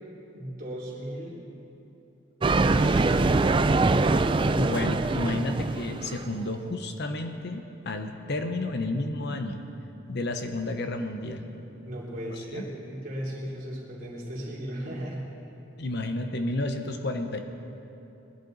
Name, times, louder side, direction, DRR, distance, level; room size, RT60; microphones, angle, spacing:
voice 1, 0.3-1.4 2.5-3.1 11.8-15.2, equal, 45° right, -5 dB, 3.2 m, -36 dB
sound 1, 2.4-6.4, right 3 dB, 25° right, 0.3 m, -23 dB
voice 2, 4.6-9.6 10.1-11.5 12.3-12.6 15.8-17.4, left 2 dB, 55° left, 6 dB, 0.8 m, -31 dB
20.5 x 12.0 x 4.0 m, 3.0 s
head